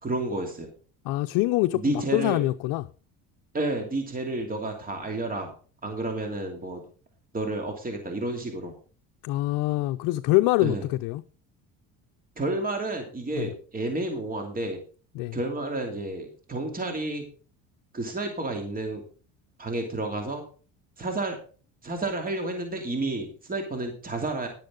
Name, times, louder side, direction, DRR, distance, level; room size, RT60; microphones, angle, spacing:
voice 1, 0.0-0.7 1.7-2.4 3.5-5.5 5.8-6.8 7.3-8.7 10.6-10.8 12.4-14.8 15.3-17.3 17.9-19.0 19.6-20.4 21.0-21.4 21.8-24.5, right 2 dB, 25° right, 2.7 m, -30 dB
voice 2, 1.1-1.8 2.1-2.8 9.2-11.2 13.3-13.5 15.2-15.4, left 18 dB, 70° left, 0.6 m, -24 dB
11.0 x 10.5 x 3.8 m
supercardioid pair, 90°, 37 cm